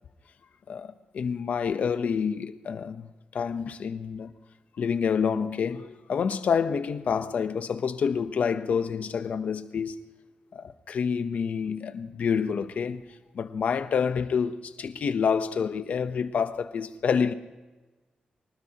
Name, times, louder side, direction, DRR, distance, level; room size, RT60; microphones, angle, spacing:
voice 1, 0.7-4.3 4.8-10.0 10.5-13.0 13.3-17.3, left 6 dB, 55° left, 0.9 m, -28 dB
24.0 x 19.5 x 3.0 m
wide cardioid pair, 180°, 3 cm